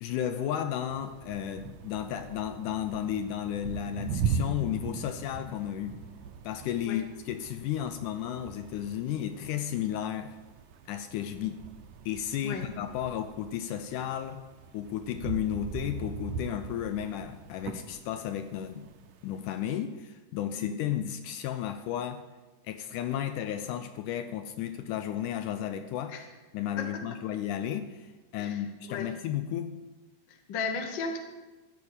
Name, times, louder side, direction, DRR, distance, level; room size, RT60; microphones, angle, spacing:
voice 1, 0.0-6.0 6.4-10.4 10.9-11.6 12.1-14.4 14.7-18.9 19.2-22.2 22.6-26.2 26.5-29.7, left 10 dB, 80° left, 9 dB, 2.0 m, -33 dB
sound 1, 0.9-19.8, right 5 dB, 70° right, 1.9 m, -40 dB
voice 2, 30.3-31.2, left 4 dB, 55° left, 5 dB, 1.3 m, -35 dB
14.5 x 5.2 x 8.8 m, 1.2 s
omnidirectional pair, 3.9 m